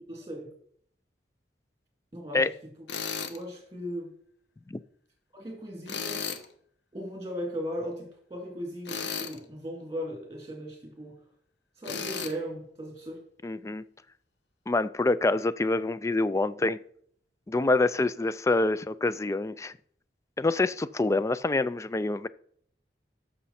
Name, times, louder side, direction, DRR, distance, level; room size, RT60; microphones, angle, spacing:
voice 1, 0.1-0.5 2.1-2.4 3.3-4.1 5.3-6.2 6.9-11.2 11.8-13.2, equal, 20° right, 2.5 m, -37 dB
Tools, 2.9-3.4 5.9-6.4 8.8-9.4 11.8-12.3, left 6 dB, 80° left, 1.0 m, -34 dB
voice 2, 13.4-13.8 14.7-16.8 17.5-19.7 20.4-22.3, left 2 dB, 15° left, 0.3 m, -26 dB
13.5 x 6.3 x 4.2 m
head